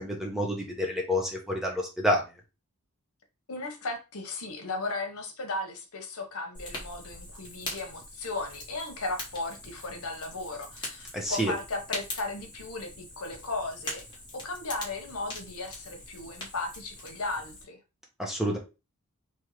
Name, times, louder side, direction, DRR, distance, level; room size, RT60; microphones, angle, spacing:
voice 1, 0.0-2.2 11.1-11.5 18.2-18.6, equal, ahead, 0.9 m, -28 dB
voice 2, 3.5-17.8, left 2 dB, 75° left, 1.0 m, -36 dB
Fire, 6.5-17.6, left 2 dB, 20° left, 1.3 m, -42 dB
3.5 x 3.1 x 3.0 m
head